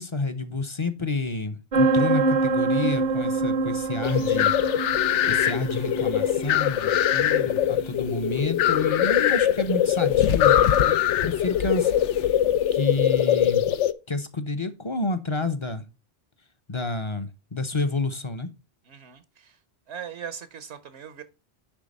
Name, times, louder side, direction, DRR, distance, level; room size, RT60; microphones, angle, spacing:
voice 1, 0.0-4.5 5.2-12.4 12.7-13.7 14.1-15.9 16.7-18.5, left 3 dB, 35° left, 0.6 m, -29 dB
sound 1, 1.7-13.2, right 3 dB, 50° right, 0.7 m, -28 dB
sound 2, 3.9-12.3, left 3 dB, 60° left, 1.7 m, -48 dB
sound 3, 4.0-13.9, left 11 dB, 90° left, 0.9 m, -22 dB
voice 2, 18.8-19.6 19.9-21.2, right 8 dB, 75° right, 1.1 m, -40 dB
10.0 x 3.4 x 5.2 m
omnidirectional pair, 1.2 m